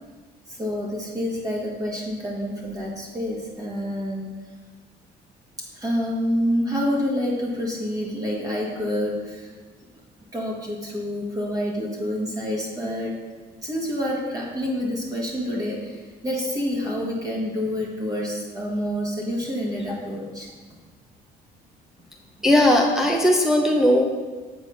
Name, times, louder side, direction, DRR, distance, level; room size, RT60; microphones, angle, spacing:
voice 1, 0.5-4.3 5.7-9.5 10.3-13.2 13.6-20.5, equal, 20° right, -3 dB, 1.5 m, -27 dB
voice 2, 22.4-24.0, left 1 dB, 5° right, -1 dB, 0.7 m, -18 dB
7.6 x 4.1 x 5.1 m, 1.3 s
cardioid pair, 110°, 17 cm